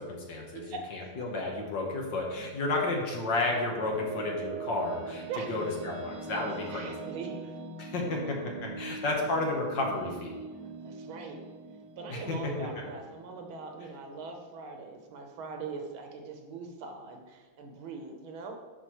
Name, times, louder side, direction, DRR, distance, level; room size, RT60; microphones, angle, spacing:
voice 1, 0.0-0.6 0.9-7.1 7.8-8.4 8.6-10.4 12.1-12.4, left 2 dB, 60° left, 0 dB, 1.8 m, -32 dB
voice 2, 0.5-0.9 5.3-5.6 6.7-7.5 10.8-11.4 12.0-18.6, right 4 dB, 80° right, 3 dB, 1.7 m, -41 dB
sound 1, 3.3-14.2, right 4 dB, 60° right, 1.2 m, -43 dB
11.0 x 4.7 x 3.0 m, 1.4 s
omnidirectional pair, 2.3 m